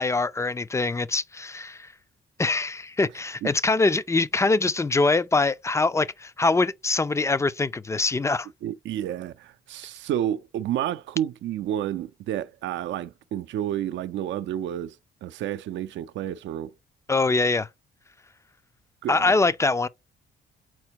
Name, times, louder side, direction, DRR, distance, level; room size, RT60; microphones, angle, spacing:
voice 1, 0.0-1.9 2.4-8.5 17.1-17.7 19.1-19.9, left 3 dB, 15° left, 0.4 m, -23 dB
voice 2, 8.6-15.0 15.2-16.7 19.0-19.3, right 11 dB, 70° right, 0.5 m, -30 dB
5.9 x 4.4 x 4.5 m
cardioid pair, 90°, 20 cm